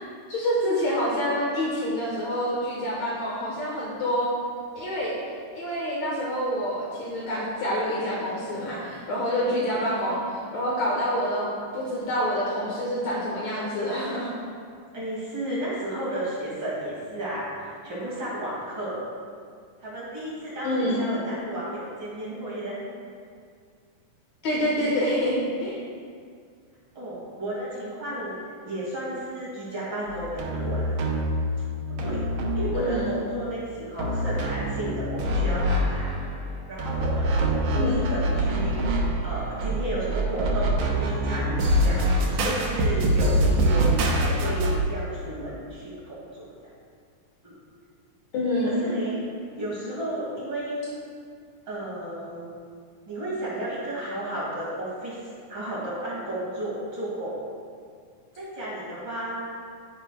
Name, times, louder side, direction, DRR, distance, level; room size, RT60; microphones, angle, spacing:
voice 1, 0.3-4.3 4.7-5.1 5.5-10.2 10.5-14.3 20.6-21.0 24.4-25.8 32.7-33.3 37.8-38.0 48.3-48.9, equal, 70° left, -5 dB, 2.4 m, -27 dB
voice 2, 14.9-19.1 19.8-22.8 26.9-28.3 28.6-31.0 32.0-32.3 32.5-36.1 36.7-39.0 39.2-46.7 47.4-47.5 48.8-49.2 49.6-50.9 51.7-52.5 53.1-57.4 58.3-59.5, right 1 dB, 40° right, -8 dB, 2.6 m, -33 dB
sound 1, 30.1-33.2 34.0-44.8, right 1 dB, 75° right, 2.2 m, -25 dB
10.5 x 9.7 x 2.3 m, 2.2 s
omnidirectional pair, 3.4 m